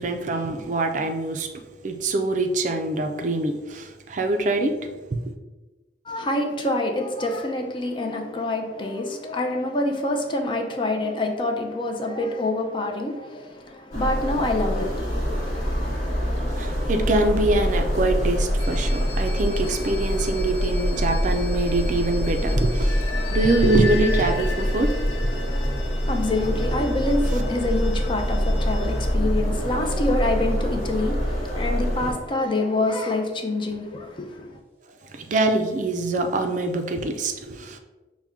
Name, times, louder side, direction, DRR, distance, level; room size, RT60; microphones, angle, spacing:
voice 1, 0.0-1.5 1.8-5.2 16.5-25.3 35.1-37.8, right 2 dB, 45° right, 0.4 m, -24 dB
voice 2, 6.1-16.0 25.9-34.6, left 2 dB, 30° left, 0.5 m, -26 dB
sound 1, 13.9-32.1, equal, 45° left, 1.1 m, -25 dB
sound 2, 18.6-29.1, left 5 dB, 80° left, 0.6 m, -38 dB
sound 3, 26.2-32.3 32.5-32.6, equal, 10° right, 0.7 m, -38 dB
5.7 x 2.2 x 3.5 m
head